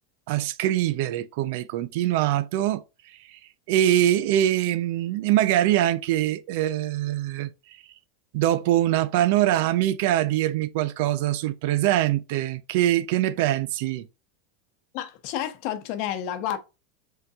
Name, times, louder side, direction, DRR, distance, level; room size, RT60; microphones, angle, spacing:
voice 1, 0.3-3.4 3.7-7.5 8.3-14.1, right 13 dB, 65° right, 0.5 m, -23 dB
voice 2, 14.9-16.6, left 10 dB, 55° left, 0.8 m, -30 dB
5.4 x 3.8 x 2.4 m
supercardioid pair, 140°, 0 cm